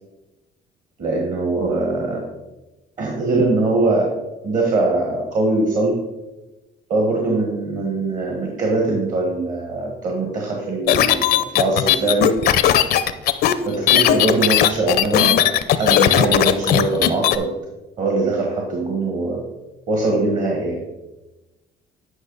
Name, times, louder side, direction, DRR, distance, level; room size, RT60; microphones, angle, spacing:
voice 1, 1.0-2.2 3.0-4.1 4.4-6.0 6.9-12.3 13.6-15.5 15.8-17.5 18.0-19.4 19.9-20.8, right 2 dB, 50° right, 0 dB, 1.6 m, -22 dB
sound 1, 10.9-17.4, left 11 dB, 70° left, 0.6 m, -16 dB
9.9 x 5.3 x 4.0 m, 1.1 s
cardioid pair, 110°, 17 cm